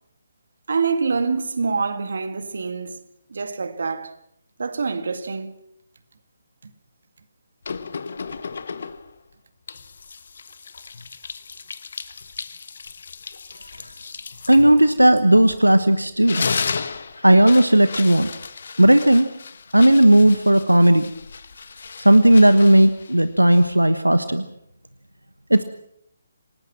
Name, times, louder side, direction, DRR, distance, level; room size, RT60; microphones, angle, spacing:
voice 1, 0.7-3.0 3.3-4.1 4.6-5.6 6.6-6.7, right 4 dB, 55° right, 2.1 m, -25 dB
sound 1, 7.6-9.2 9.7-15.7 16.1-23.9, left 5 dB, 55° left, 1.3 m, -34 dB
voice 2, 14.5-16.4 17.2-18.3 18.8-19.3 19.7-21.0 22.0-24.5 25.5-25.6, right 1 dB, 85° right, 1.1 m, -15 dB
28.0 x 18.5 x 6.1 m
figure-of-eight pair, 140°, 0 cm